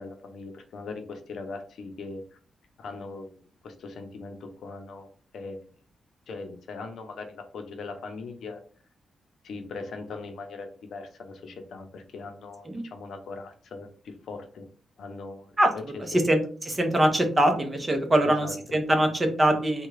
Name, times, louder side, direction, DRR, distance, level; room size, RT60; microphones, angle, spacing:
voice 1, 0.0-2.4 2.8-3.4 3.6-5.1 5.3-5.7 6.3-8.6 9.4-14.7 15.0-16.2 18.2-18.5, left 3 dB, 70° left, 5 dB, 0.6 m, -40 dB
voice 2, 15.6-19.9, right 1 dB, 20° right, 5 dB, 0.7 m, -23 dB
3.6 x 2.3 x 3.2 m, 0.42 s
wide cardioid pair, 135°, 0 cm